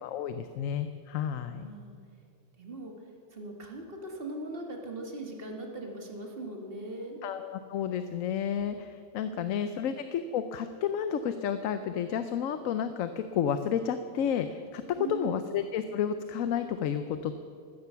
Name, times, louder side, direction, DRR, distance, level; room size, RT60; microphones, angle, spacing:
voice 1, 0.0-1.7 7.2-17.3, left 8 dB, 85° left, 10 dB, 1.1 m, -31 dB
voice 2, 1.5-2.0 2.6-2.9 3.3-7.2 9.3-9.9 15.0-15.4, right 2 dB, 45° right, 1 dB, 2.1 m, -40 dB
15.5 x 13.0 x 5.7 m, 2.3 s
omnidirectional pair, 1.4 m